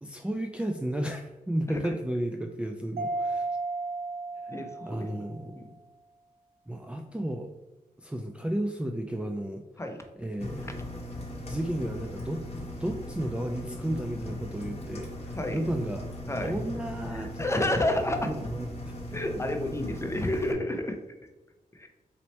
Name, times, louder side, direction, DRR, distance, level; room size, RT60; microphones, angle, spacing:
voice 1, 0.0-3.5 4.5-4.6 4.9-5.6 6.7-7.5 8.0-9.6 10.2-10.8 11.5-16.1 16.4-17.6 18.2-19.0, right 1 dB, 5° right, 4 dB, 0.4 m, -33 dB
Mallet percussion, 3.0-5.5, right 3 dB, 80° right, 0.5 m, -33 dB
voice 2, 4.5-5.1 5.5-5.7 9.8-10.0 10.6-10.7 15.3-15.6 16.3-16.6 17.1-18.3 19.1-21.0 21.7-21.9, left 1 dB, 20° left, 5 dB, 0.7 m, -30 dB
Engine, 10.4-20.5, left 1 dB, 45° left, 1.1 m, -39 dB
4.1 x 3.1 x 4.2 m, 1.0 s
cardioid pair, 65°, 15 cm